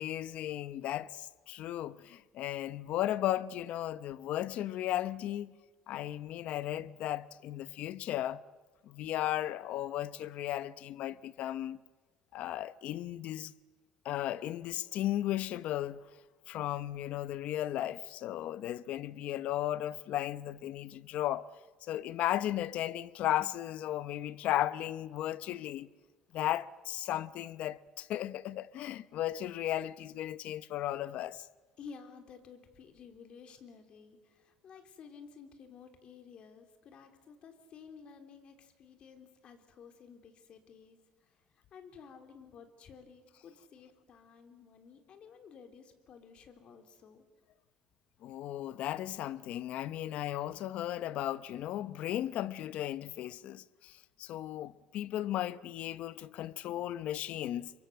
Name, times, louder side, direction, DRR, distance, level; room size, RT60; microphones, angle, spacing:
voice 1, 0.0-5.5 5.9-8.4 8.8-11.8 12.3-13.5 14.0-16.1 16.5-21.5 21.8-25.9 26.3-31.5 48.2-57.7, left 13 dB, 60° left, 0.9 m, -35 dB
voice 2, 31.8-41.0 41.3-41.4 41.7-47.2, left 6 dB, 45° left, 3.4 m, -53 dB
27.5 x 24.0 x 7.9 m
cardioid pair, 155°, 2 cm